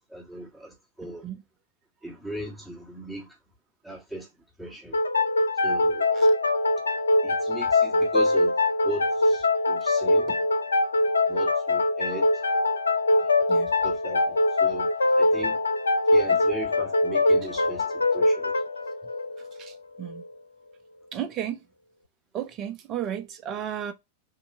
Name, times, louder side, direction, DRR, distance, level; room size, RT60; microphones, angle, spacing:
voice 1, 0.1-1.3 2.0-3.4 3.8-4.3 4.6-5.0 5.6-6.1 7.2-8.6 8.8-10.3 11.1-12.3 13.2-13.6 13.8-14.9 15.2-15.6 16.1-18.6, right 1 dB, 5° right, 1.7 m, -38 dB
sound 1, 4.9-20.3, left 2 dB, 75° left, 0.4 m, -23 dB
voice 2, 19.6-20.2 21.1-21.6 22.3-23.9, right 10 dB, 35° right, 0.8 m, -34 dB
3.8 x 2.9 x 4.4 m
figure-of-eight pair, 90°, 0 cm